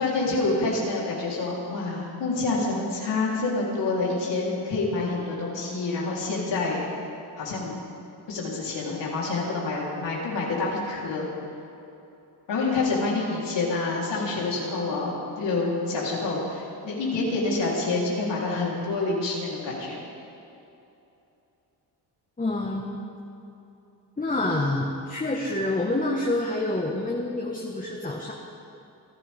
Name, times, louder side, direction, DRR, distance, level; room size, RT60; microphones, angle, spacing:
voice 1, 0.0-6.8 7.4-7.7 8.3-11.3 12.5-20.0, left 3 dB, 85° left, -5 dB, 3.8 m, -27 dB
voice 2, 22.4-23.0 24.2-28.3, left 2 dB, 20° left, -1 dB, 1.5 m, -27 dB
27.0 x 11.5 x 3.6 m, 2.8 s
cardioid pair, 80°, 42 cm